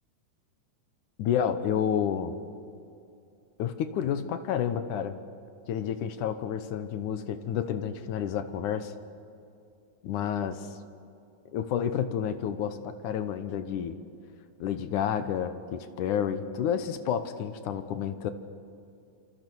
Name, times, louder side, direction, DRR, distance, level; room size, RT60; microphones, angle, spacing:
voice 1, 1.2-2.3 3.6-5.2 5.7-8.9 10.0-10.7 11.5-14.0 14.6-18.3, left 8 dB, 75° left, 10 dB, 2.4 m, -30 dB
26.5 x 26.5 x 6.3 m, 2.6 s
omnidirectional pair, 3.8 m